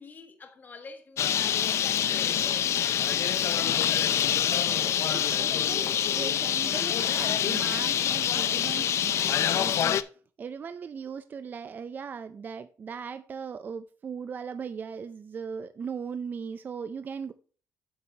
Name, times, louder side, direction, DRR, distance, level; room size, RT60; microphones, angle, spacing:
voice 1, 0.0-1.4 1.8-6.1, left 4 dB, 30° left, 1.6 m, -46 dB
Bird, 1.2-10.0, left 10 dB, 55° left, 0.4 m, -26 dB
voice 2, 5.1-10.0 10.4-17.3, right 6 dB, 35° right, 0.4 m, -38 dB
8.7 x 6.9 x 2.8 m
cardioid pair, 135°, 6 cm